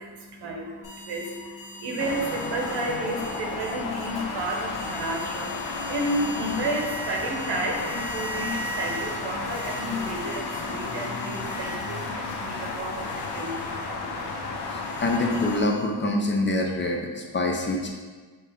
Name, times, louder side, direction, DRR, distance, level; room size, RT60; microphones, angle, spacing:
voice 1, 0.0-15.0, right 1 dB, 70° right, 1 dB, 0.9 m, -32 dB
sound 1, 0.8-12.3 12.7-16.1, equal, 45° left, 1.4 m, -40 dB
sound 2, 2.0-15.6, left 3 dB, 70° left, 0.7 m, -33 dB
voice 2, 14.7-17.9, left 2 dB, 30° left, 1 dB, 0.5 m, -25 dB
4.5 x 2.7 x 3.4 m, 1.4 s
cardioid pair, 90°, 41 cm